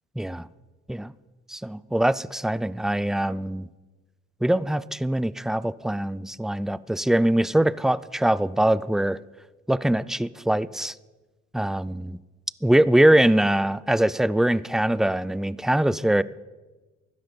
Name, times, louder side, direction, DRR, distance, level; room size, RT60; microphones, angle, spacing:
voice 1, 0.2-0.5 0.9-1.1 1.5-3.7 4.4-9.2 9.7-10.9 11.5-12.2 12.6-16.2, right 1 dB, ahead, 0.3 m, -22 dB
16.0 x 11.5 x 5.2 m
cardioid pair, 90°, 30 cm